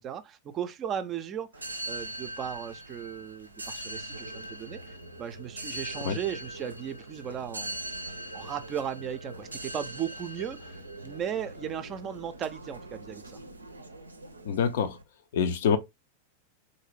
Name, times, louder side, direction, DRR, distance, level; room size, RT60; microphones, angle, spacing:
voice 1, 0.0-7.9 8.3-13.4, right 9 dB, 30° right, 0.4 m, -36 dB
sound 1, 1.5-15.0, right 1 dB, 80° right, 0.5 m, -41 dB
voice 2, 14.5-15.0 15.3-15.8, left 7 dB, 55° left, 0.5 m, -25 dB
3.9 x 2.6 x 3.0 m
figure-of-eight pair, 90°, 0 cm